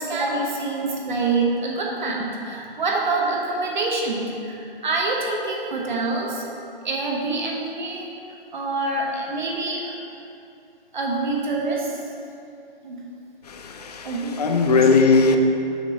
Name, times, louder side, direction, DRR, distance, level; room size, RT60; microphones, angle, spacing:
voice 1, 0.0-6.5 6.8-8.1 8.5-9.9 10.9-12.0 12.8-13.1 14.0-14.9, right 3 dB, 55° right, 1.0 m, -26 dB
voice 2, 13.5-15.4, left 4 dB, 45° left, 0.5 m, -19 dB
6.2 x 4.5 x 4.0 m
hypercardioid pair, 160°, 29 cm